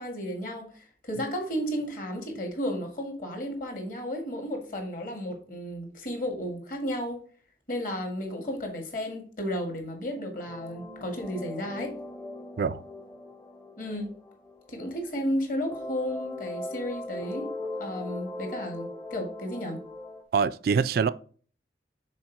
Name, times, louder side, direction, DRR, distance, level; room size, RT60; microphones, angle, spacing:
voice 1, 0.0-7.2 7.7-12.0 13.8-14.1 14.7-17.5 17.8-19.8, equal, 50° left, 1.8 m, -33 dB
sound 1, 10.5-15.3 15.7-20.2, left 2 dB, 20° left, 0.6 m, -39 dB
voice 2, 20.3-21.1, right 5 dB, 55° right, 0.3 m, -24 dB
6.2 x 4.0 x 4.6 m
head